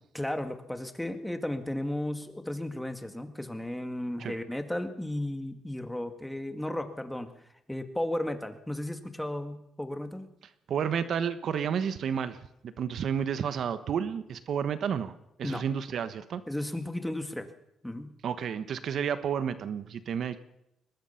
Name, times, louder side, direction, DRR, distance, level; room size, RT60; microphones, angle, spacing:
voice 1, 0.1-7.3 7.7-10.3 15.4-15.6 16.5-17.5 17.8-18.2, left 1 dB, 5° left, 7 dB, 2.1 m, -34 dB
voice 2, 10.7-15.1 15.4-16.4 18.2-20.4, right 7 dB, 65° right, 12 dB, 1.2 m, -31 dB
22.5 x 19.5 x 5.8 m, 0.83 s
cardioid pair, 90°, 0 cm